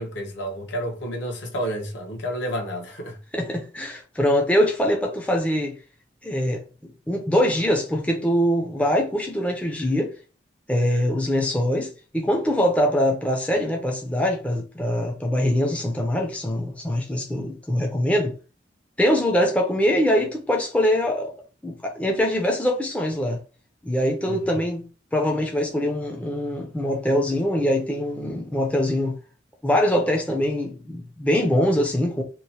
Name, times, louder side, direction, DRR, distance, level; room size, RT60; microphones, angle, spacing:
voice 1, 0.0-3.2 24.3-24.6, equal, 75° left, 0.8 m, -30 dB
voice 2, 3.3-5.8 6.2-10.1 10.7-18.3 19.0-21.4 21.6-23.4 23.8-24.8 25.1-29.2 29.6-32.2, equal, 5° left, 0.4 m, -23 dB
2.9 x 2.0 x 2.7 m
head